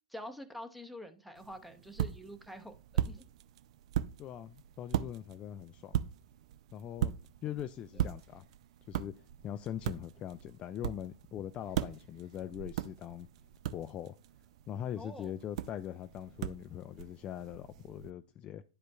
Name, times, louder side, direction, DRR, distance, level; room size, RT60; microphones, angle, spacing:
voice 1, 0.1-3.2 14.9-15.3, equal, ahead, 0.8 m, -47 dB
sound 1, 1.3-18.1, right 11 dB, 60° right, 0.4 m, -39 dB
voice 2, 4.2-6.0 6.7-7.1 7.4-8.5 8.9-13.3 13.7-14.2 14.7-18.6, left 10 dB, 30° left, 0.3 m, -42 dB
10.5 x 5.1 x 2.3 m
hypercardioid pair, 110°, 4 cm